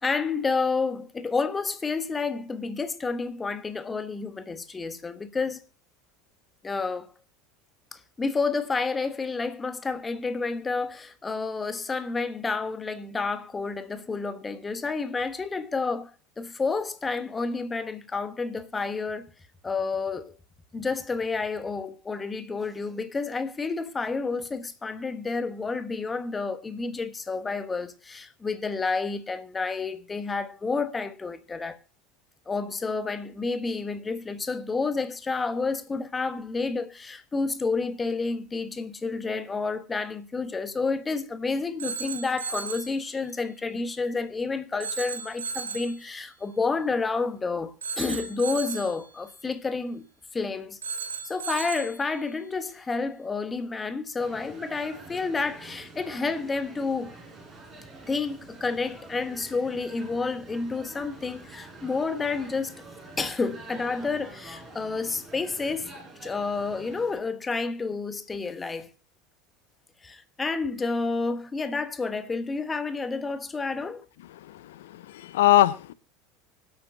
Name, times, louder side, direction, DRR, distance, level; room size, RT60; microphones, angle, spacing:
voice 1, 0.0-5.6 6.6-7.1 7.9-16.1 16.4-19.3 19.6-20.4 20.7-31.8 32.5-50.1 50.3-50.8 51.2-57.1 58.1-62.8 63.2-65.9 66.2-68.9 70.0-74.0, left 4 dB, 20° left, 1.2 m, -30 dB
Telephone, 41.8-43.0 44.8-46.0 47.8-49.0 50.8-52.0, right 5 dB, 75° right, 1.8 m, -35 dB
sound 1, 54.2-67.2, right 3 dB, 15° right, 6.3 m, -46 dB
voice 2, 74.5-75.9, left 14 dB, 65° left, 0.6 m, -22 dB
25.0 x 8.6 x 2.7 m
figure-of-eight pair, 75°, 0 cm